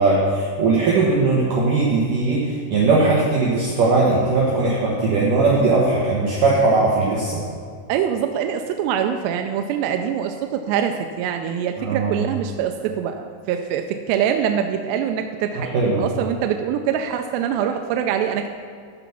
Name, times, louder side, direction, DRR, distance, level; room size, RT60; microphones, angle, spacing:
voice 1, 0.0-7.4 11.8-12.2 15.6-16.0, right 3 dB, 65° right, -5 dB, 2.3 m, -19 dB
voice 2, 7.9-18.5, right 8 dB, 85° right, 5 dB, 2.6 m, -24 dB
14.0 x 5.0 x 5.9 m, 2.1 s
omnidirectional pair, 5.0 m